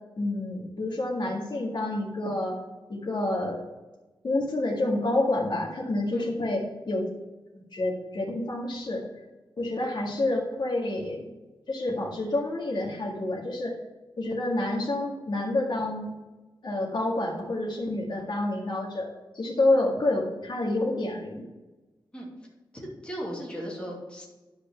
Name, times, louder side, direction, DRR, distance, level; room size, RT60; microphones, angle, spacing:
voice 1, 0.2-2.6 2.9-3.6 4.2-7.1 7.5-9.0 9.6-11.3 11.7-13.8 14.2-16.1 16.6-21.5, left 2 dB, 60° left, -3 dB, 2.0 m, -28 dB
voice 2, 22.7-24.3, equal, 10° left, -4 dB, 2.6 m, -36 dB
11.0 x 5.1 x 5.9 m, 1.1 s
wide cardioid pair, 145°, 9 cm